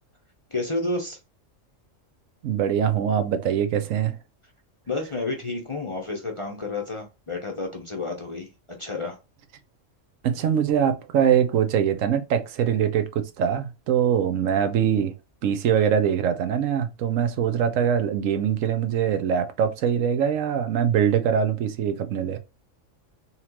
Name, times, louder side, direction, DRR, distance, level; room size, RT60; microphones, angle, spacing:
voice 1, 0.5-1.2 4.9-9.2, left 2 dB, 30° left, 0.6 m, -30 dB
voice 2, 2.4-4.1 10.2-15.1 15.4-22.4, right 8 dB, 80° right, 1.0 m, -23 dB
4.1 x 2.9 x 2.9 m
omnidirectional pair, 1.3 m